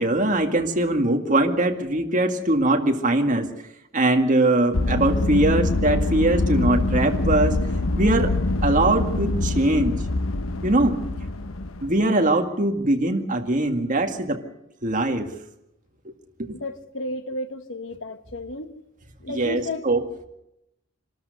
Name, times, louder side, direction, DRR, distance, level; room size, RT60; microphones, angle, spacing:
voice 1, 0.0-3.5 3.9-7.6 8.0-8.4 8.6-10.0 10.6-11.0 11.8-14.4 14.8-15.3 16.1-16.2 16.4-16.6 19.3-20.1, right 2 dB, 40° right, 2.0 m, -21 dB
sound 1, 4.7-12.0, left 2 dB, 85° left, 1.1 m, -24 dB
voice 2, 16.6-18.7 19.2-19.8, left 1 dB, 65° left, 1.4 m, -32 dB
26.5 x 13.0 x 8.1 m
head